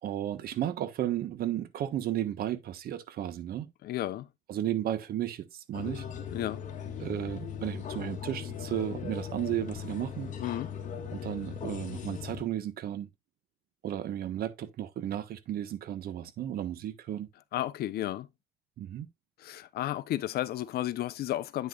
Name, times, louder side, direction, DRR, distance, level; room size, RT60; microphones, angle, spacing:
voice 1, 0.0-3.7 4.5-6.0 7.0-10.3 11.1-13.1 13.8-17.3 18.8-19.1, right 11 dB, 60° right, 1.3 m, -34 dB
voice 2, 3.8-4.3 6.3-6.6 10.4-10.7 17.5-18.3 19.4-21.7, left 13 dB, 65° left, 0.7 m, -33 dB
sound 1, 5.7-12.4, left 7 dB, 45° left, 2.0 m, -39 dB
9.0 x 6.6 x 2.4 m
cardioid pair, 110°, 17 cm